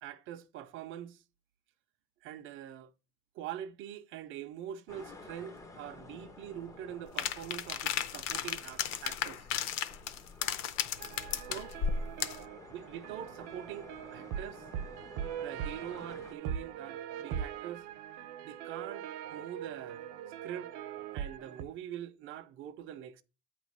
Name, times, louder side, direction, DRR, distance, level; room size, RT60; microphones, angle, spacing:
voice 1, 0.0-1.2 2.2-2.9 3.3-9.5 11.5-11.8 12.7-14.7 15.4-17.9 18.4-20.1 20.4-20.7 21.1-23.2, right 10 dB, 40° right, 0.5 m, -44 dB
sound 1, 4.9-16.3, left 2 dB, 10° left, 0.4 m, -53 dB
sound 2, 7.2-12.4, left 8 dB, 55° left, 0.7 m, -34 dB
sound 3, 11.0-21.6, right 9 dB, 70° right, 0.8 m, -41 dB
8.9 x 3.1 x 6.5 m
cardioid pair, 175°, 32 cm